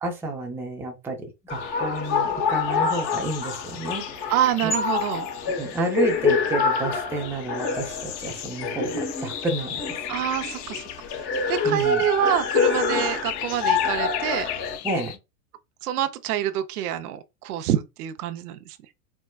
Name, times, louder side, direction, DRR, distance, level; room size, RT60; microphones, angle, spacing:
voice 1, 0.0-4.3 4.6-4.7 5.5-10.0 11.6-12.0 14.8-15.2, right 1 dB, 5° right, 0.5 m, -30 dB
sound 1, 1.5-15.2, left 11 dB, 50° left, 0.6 m, -38 dB
sound 2, 1.5-14.8, left 5 dB, 25° left, 0.9 m, -27 dB
voice 2, 4.3-5.3 10.1-10.8 11.5-14.5 15.8-18.8, right 11 dB, 75° right, 0.6 m, -26 dB
4.5 x 2.1 x 2.3 m
hypercardioid pair, 125°, 46 cm